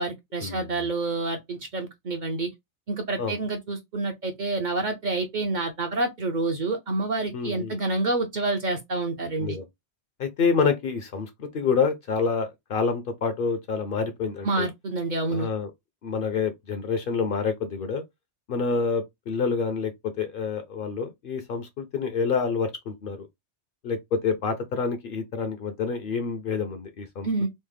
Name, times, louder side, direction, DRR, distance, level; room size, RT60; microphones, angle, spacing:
voice 1, 0.0-2.5 2.9-9.6 14.4-15.5 27.2-27.5, right 2 dB, 55° right, 0.6 m, -28 dB
voice 2, 7.3-7.8 9.4-9.6 10.2-14.7 15.3-15.7 16.0-18.0 18.5-23.3 23.8-27.3, left 5 dB, 60° left, 0.6 m, -27 dB
3.1 x 2.0 x 3.2 m
omnidirectional pair, 1.2 m